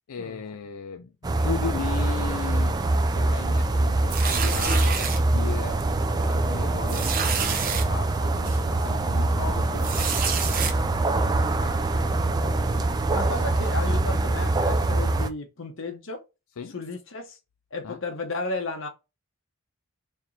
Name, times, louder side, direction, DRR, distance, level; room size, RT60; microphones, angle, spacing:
voice 1, 0.1-1.1 1.4-5.8 6.3-10.9 16.6-16.7 17.8-18.0, left 6 dB, 90° left, 0.4 m, -37 dB
sound 1, 1.2-15.3, right 2 dB, 20° right, 0.3 m, -24 dB
sound 2, 4.1-5.2 5.8-6.0 6.2-6.3 6.9-7.8 8.4-8.6 9.8-10.7, right 6 dB, 40° right, 0.7 m, -28 dB
voice 2, 11.6-12.1 12.4-12.8 13.1-16.2 16.7-17.4 17.7-18.9, left 3 dB, 60° left, 1.0 m, -34 dB
4.5 x 3.0 x 2.6 m
head